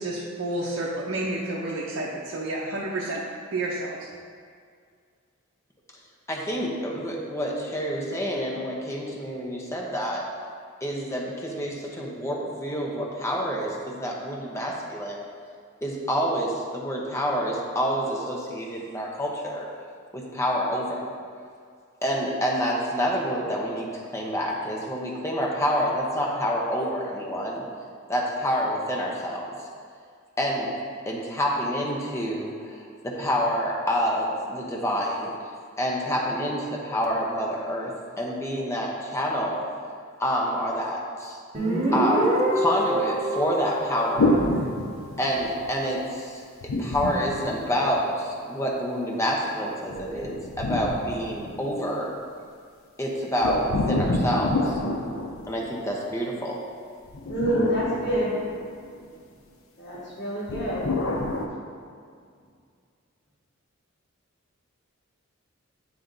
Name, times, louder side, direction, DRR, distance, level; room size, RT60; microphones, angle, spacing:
voice 1, 0.0-3.2 3.5-4.0, right 2 dB, 60° right, -4 dB, 0.7 m, -30 dB
voice 2, 6.3-10.3 10.8-15.2 15.8-19.7 20.1-21.0 22.0-27.6 28.1-29.5 30.4-30.7 31.1-35.3 35.8-39.6 40.2-41.4 41.9-44.4 45.2-46.4 46.8-52.1 53.0-54.8 55.5-56.6, equal, 15° left, -2 dB, 0.8 m, -28 dB
Guitar, 41.5-45.0, right 1 dB, 35° right, 1.1 m, -26 dB
sound 1, 44.2-45.6 46.6-48.2 49.9-51.9 53.4-56.0 57.1-59.0 60.5-61.5, left 1 dB, 80° left, 0.6 m, -28 dB
voice 3, 57.3-58.4 59.8-60.9, equal, 55° left, -7 dB, 1.5 m, -26 dB
8.6 x 3.3 x 3.9 m, 2.1 s
head